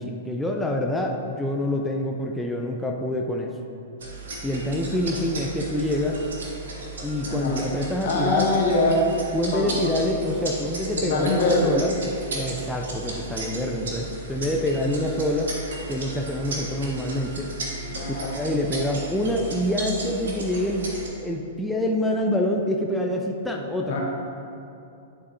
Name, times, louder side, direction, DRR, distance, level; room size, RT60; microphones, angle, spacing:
voice 1, 0.0-3.6 4.4-6.2 7.0-8.5 9.3-12.0 12.3-15.5 15.9-17.5 18.1-24.0, left 1 dB, 5° left, 0 dB, 0.5 m, -26 dB
sound 1, 4.0-21.1, right 2 dB, 80° right, 1.2 m, -35 dB
voice 2, 7.2-7.6 8.0-9.1 9.5-9.7 11.0-11.8 17.9-18.4 23.9-24.0, left 2 dB, 70° left, -2 dB, 1.2 m, -23 dB
9.7 x 4.1 x 2.6 m, 2.6 s
hypercardioid pair, 120°, 0 cm